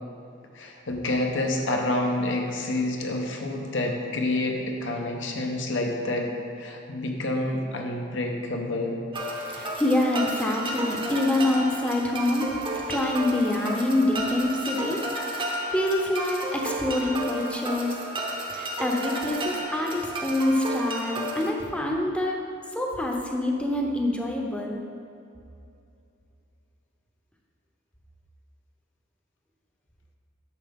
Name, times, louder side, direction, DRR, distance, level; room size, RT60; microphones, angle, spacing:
voice 1, 0.5-6.3 6.6-9.0, left 2 dB, 65° left, 2 dB, 1.0 m, -28 dB
sound 1, 9.1-21.5, right 1 dB, 25° right, 0.8 m, -32 dB
voice 2, 9.5-12.6 12.9-15.0 15.7-18.0 18.5-22.4 22.7-24.8, left 1 dB, 5° left, 0 dB, 0.8 m, -26 dB
9.4 x 6.7 x 3.7 m, 2.5 s
head